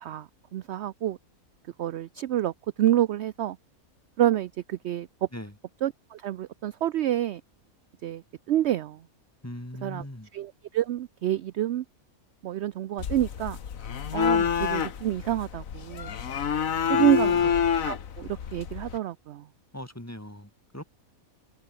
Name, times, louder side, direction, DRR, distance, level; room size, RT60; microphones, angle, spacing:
voice 1, 0.0-1.2 1.8-2.5 2.8-3.6 4.2-5.1 5.8-7.4 8.0-9.0 9.8-10.0 10.3-11.8 12.4-13.6 14.1-16.1 16.8-17.4 17.8-19.5, right 12 dB, 65° right, 0.7 m, -28 dB
voice 2, 9.4-10.3 16.9-17.5 19.7-20.8, left 1 dB, 10° left, 2.8 m, -40 dB
sound 1, 13.0-19.0, left 7 dB, 65° left, 1.6 m, -27 dB
omnidirectional pair, 1.5 m